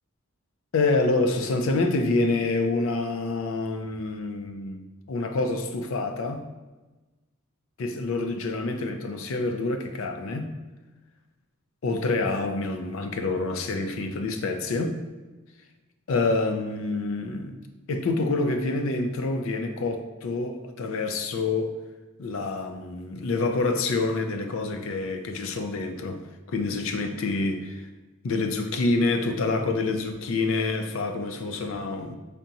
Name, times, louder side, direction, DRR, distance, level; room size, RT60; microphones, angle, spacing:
voice 1, 0.7-4.8 5.1-6.4 7.8-10.5 11.8-15.0 16.1-17.5 17.9-21.8 22.2-26.2 26.5-27.9 28.2-32.2, left 3 dB, 60° left, 0.4 m, -27 dB
3.8 x 3.5 x 2.8 m
head